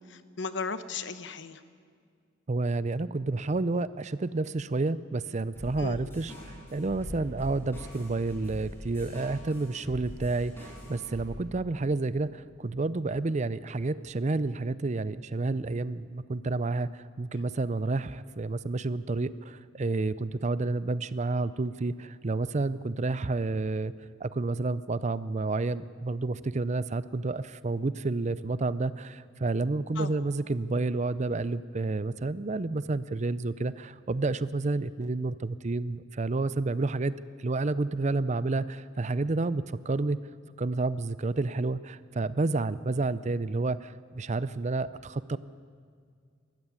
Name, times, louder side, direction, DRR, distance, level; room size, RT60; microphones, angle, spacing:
voice 1, 0.0-1.6 5.8-6.0 29.9-30.1, left 4 dB, 65° left, 12 dB, 1.0 m, -36 dB
voice 2, 2.5-23.9 24.2-37.1 37.4-40.2 40.6-45.4, right 3 dB, 35° right, 16 dB, 0.5 m, -30 dB
sound 1, 5.5-11.3, equal, 10° left, 6.2 m, -43 dB
20.0 x 14.5 x 9.6 m, 2.1 s
head